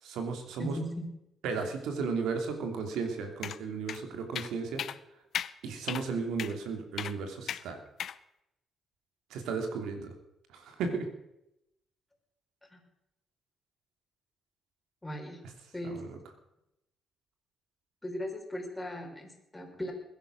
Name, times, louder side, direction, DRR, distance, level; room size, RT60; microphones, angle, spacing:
voice 1, 0.0-0.7 1.4-4.8 5.6-7.8 9.3-10.1 10.5-11.1 15.8-16.2, right 5 dB, 85° right, 5 dB, 2.9 m, -34 dB
voice 2, 0.6-1.1 12.7-12.8 15.0-15.4 15.7-16.0 18.0-19.9, equal, 10° left, 2 dB, 5.0 m, -38 dB
sound 1, 3.4-3.6 3.9-4.0 4.3-4.5 4.8-5.0 5.3-5.5 5.9-6.0 6.4-6.5 7.0-7.1 7.5-7.6 8.0-8.2, left 9 dB, 65° left, 0.7 m, -35 dB
21.0 x 10.5 x 6.4 m, 0.86 s
cardioid pair, 90°, 0 cm